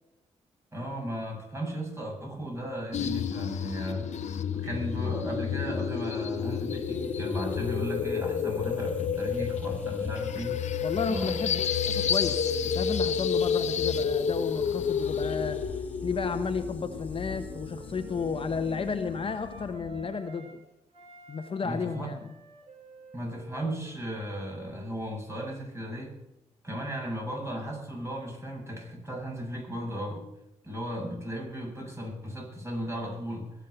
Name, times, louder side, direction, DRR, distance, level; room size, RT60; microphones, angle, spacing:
voice 1, 0.7-10.6 11.0-11.4 21.6-22.1 23.1-26.2 26.6-30.3 30.6-33.5, equal, 20° right, -1 dB, 7.6 m, -36 dB
sound 1, 2.9-20.1, left 7 dB, 65° left, 0.9 m, -30 dB
sound 2, 6.3-19.7, left 1 dB, 10° left, 2.2 m, -49 dB
voice 2, 10.8-15.6 16.0-20.5 21.3-22.3, left 5 dB, 45° left, 8 dB, 1.1 m, -32 dB
Wind instrument woodwind instrument, 16.1-20.6 20.9-25.4, right 3 dB, 55° right, 7.0 m, -51 dB
21.5 x 7.6 x 6.9 m, 0.87 s
cardioid pair, 60°, 12 cm